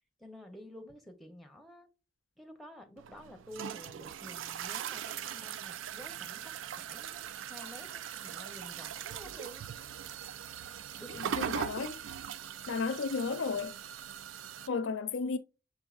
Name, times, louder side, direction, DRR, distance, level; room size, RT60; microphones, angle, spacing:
voice 1, 0.2-1.9 2.4-9.7 11.0-11.5 12.6-12.8, left 1 dB, ahead, 0.6 m, -51 dB
sound 1, 3.0-14.7, right 9 dB, 80° right, 0.3 m, -40 dB
voice 2, 11.4-12.0 12.7-13.7 14.7-15.4, left 4 dB, 80° left, 0.5 m, -33 dB
6.1 x 3.6 x 2.3 m
head